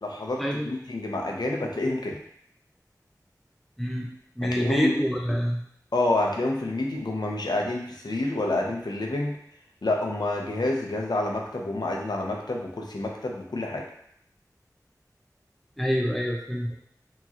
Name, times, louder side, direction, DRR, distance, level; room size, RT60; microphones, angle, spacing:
voice 1, 0.0-2.2 4.4-5.0 5.9-9.3 9.8-13.8, left 2 dB, 90° left, 0 dB, 0.7 m, -28 dB
voice 2, 3.8-4.1 4.4-5.6 15.8-16.8, equal, ahead, 0 dB, 0.7 m, -26 dB
4.7 x 3.0 x 2.9 m, 0.70 s
wide cardioid pair, 50°, 7 cm